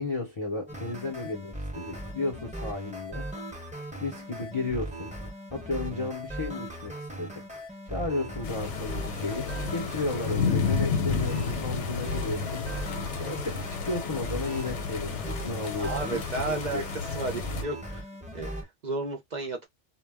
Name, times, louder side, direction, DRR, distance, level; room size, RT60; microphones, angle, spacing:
voice 1, 0.0-3.3 4.0-7.4 7.9-12.7 13.2-16.9, left 3 dB, 35° left, 0.5 m, -34 dB
sound 1, 0.7-18.6, right 1 dB, 5° right, 0.7 m, -38 dB
sound 2, 8.4-17.6, left 5 dB, 75° left, 0.9 m, -31 dB
voice 2, 15.8-16.8 17.1-18.1 18.3-19.7, right 3 dB, 50° right, 0.6 m, -33 dB
2.2 x 2.2 x 3.3 m
omnidirectional pair, 1.2 m